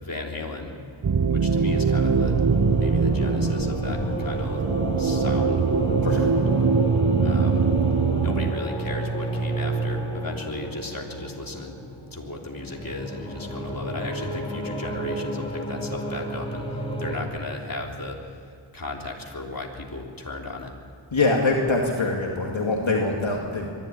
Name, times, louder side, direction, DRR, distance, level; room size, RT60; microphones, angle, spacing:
voice 1, 0.0-0.7 1.3-2.4 2.8-4.6 5.0-5.6 7.2-7.6 8.2-11.8 12.1-16.6 17.0-18.4 18.7-20.7, left 2 dB, 40° left, 0 dB, 3.5 m, -35 dB
sound 1, 1.0-8.5, right 5 dB, 40° right, 0.8 m, -23 dB
sound 2, 2.0-17.2, right 2 dB, 10° left, 4.7 m, -30 dB
voice 2, 21.1-23.7, left 3 dB, 65° left, 0 dB, 2.3 m, -24 dB
23.5 x 12.5 x 10.0 m, 2.4 s
cardioid pair, 45°, 50 cm